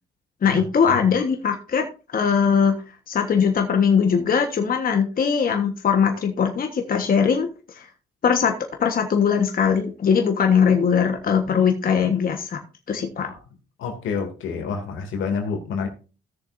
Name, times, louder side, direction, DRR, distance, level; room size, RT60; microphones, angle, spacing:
voice 1, 0.4-1.8 2.1-2.7 3.1-7.9 8.2-8.5 8.8-12.6 12.9-13.3, left 6 dB, 45° left, 1.4 m, -20 dB
voice 2, 13.8-15.9, left 5 dB, 85° left, 2.6 m, -28 dB
17.0 x 6.8 x 2.6 m
cardioid pair, 90°, 20 cm